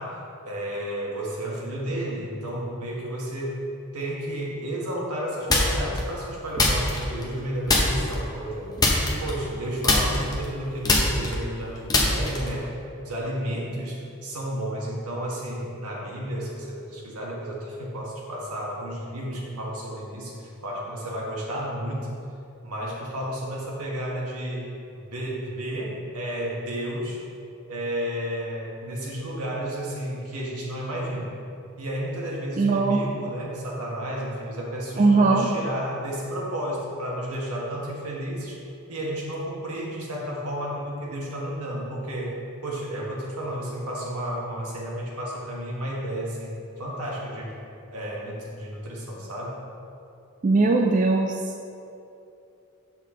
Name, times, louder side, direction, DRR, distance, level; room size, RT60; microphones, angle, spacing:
voice 1, 0.0-3.6 3.9-8.8 9.2-22.2 22.6-24.7 25.1-27.2 27.7-31.3 31.8-38.6 38.9-42.3 42.6-47.5 47.9-49.6, equal, 90° right, -3 dB, 1.6 m, -32 dB
sound 1, 5.5-6.0 6.6-7.4 7.7-8.2 8.8-9.6 9.8-12.6, left 2 dB, 15° left, 0.7 m, -22 dB
voice 2, 32.6-33.0 35.0-35.5 50.4-51.3, right 3 dB, 35° right, 2 dB, 0.3 m, -19 dB
7.2 x 5.8 x 3.8 m, 2.7 s
head